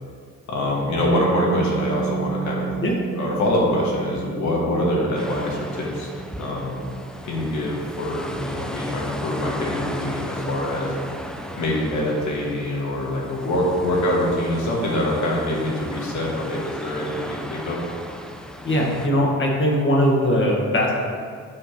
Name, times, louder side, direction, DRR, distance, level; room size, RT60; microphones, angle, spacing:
voice 1, 0.5-2.7 3.1-6.1 6.4-6.8 7.2-10.9 11.6-17.8, left 1 dB, 70° left, -3 dB, 2.0 m, -24 dB
Piano, 1.5-8.8, right 7 dB, 65° right, 1.0 m, -34 dB
sound 1, 5.2-19.1, equal, ahead, 0.6 m, -35 dB
voice 2, 18.6-20.9, equal, 40° left, -2 dB, 1.8 m, -20 dB
7.9 x 3.7 x 5.9 m, 2.1 s
cardioid pair, 90°, 30 cm